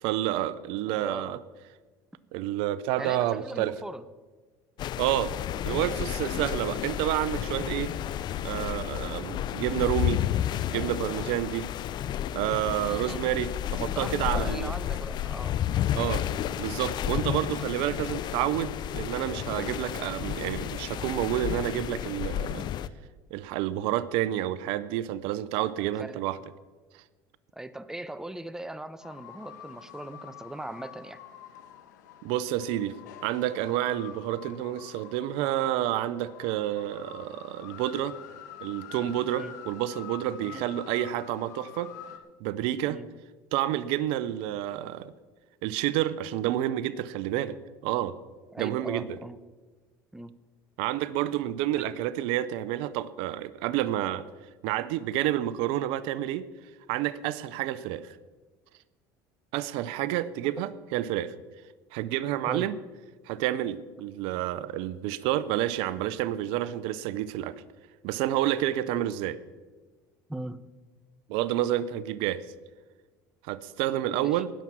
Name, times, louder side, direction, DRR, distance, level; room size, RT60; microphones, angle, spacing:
voice 1, 0.0-1.4 2.3-3.7 5.0-5.3 5.6-7.9 8.4-10.2 10.7-11.7 12.3-14.7 15.9-16.3 16.6-22.6 23.3-26.4 32.2-32.9 33.2-38.1 38.6-41.9 42.4-43.0 43.5-45.1 45.6-47.6 47.8-48.1 48.6-49.2 50.8-54.2 54.6-56.4 56.9-58.2 59.5-61.3 61.9-62.7 63.3-67.5 68.0-69.4 71.3-72.4 73.4-74.5, right 13 dB, 75° right, 17 dB, 0.6 m, -29 dB
voice 2, 0.9-1.4 3.0-4.0 6.3-6.5 12.8-13.2 13.9-15.6 17.5-17.6 26.0-26.2 27.5-31.2 39.2-39.5 40.4-40.6 42.8-43.1 48.5-49.4 50.1-50.3 62.5-62.7 68.9-69.0 70.3-70.7 74.1-74.4, right 1 dB, 5° right, 14 dB, 0.8 m, -39 dB
sound 1, 4.8-22.9, left 11 dB, 50° left, 0.6 m, -31 dB
sound 2, 29.0-42.2, left 9 dB, 90° left, 1.3 m, -46 dB
19.0 x 7.3 x 6.2 m, 1.3 s
supercardioid pair, 85°, 9 cm